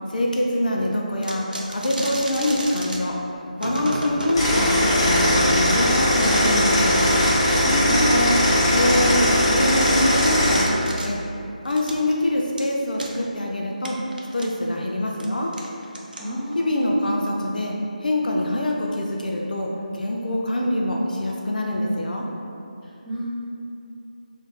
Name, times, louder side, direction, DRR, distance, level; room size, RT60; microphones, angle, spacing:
voice 1, 0.1-3.2 3.6-7.0 7.9-8.4 8.7-11.2 11.6-14.0 14.3-15.5 16.6-17.7 18.0-22.3, left 1 dB, 70° left, -1 dB, 0.4 m, -24 dB
sound 1, 1.2-3.0 3.6-4.4 5.0-5.8 6.2-7.5 7.7-7.8 8.5-8.6 9.1-9.2 9.6-11.1 11.6-12.1 12.6-12.7 13.0-13.1 13.8-14.5 15.1-15.3 15.5-16.5, right 1 dB, 85° right, 0.5 m, -31 dB
sound 2, 4.3-10.6, left 1 dB, 40° left, 0.8 m, -19 dB
voice 2, 7.6-8.2 16.2-16.8 23.0-23.2, right 1 dB, 10° left, -12 dB, 0.8 m, -27 dB
2.6 x 2.5 x 3.6 m, 2.7 s
figure-of-eight pair, 155°, 5 cm